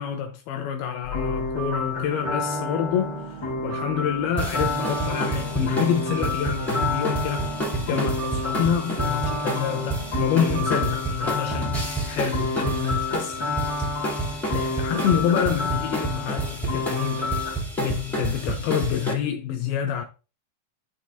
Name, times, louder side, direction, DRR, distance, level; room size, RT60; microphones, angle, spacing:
voice 1, 0.0-13.4 14.0-14.2 14.5-17.4 17.8-20.0, left 9 dB, 80° left, 2.6 m, -27 dB
sound 1, 1.0-17.5, left 3 dB, 30° left, 2.5 m, -30 dB
sound 2, 2.1-11.0, right 5 dB, 80° right, 3.0 m, -39 dB
sound 3, 4.4-19.1, right 2 dB, ahead, 2.0 m, -30 dB
11.5 x 4.6 x 2.6 m
omnidirectional pair, 4.5 m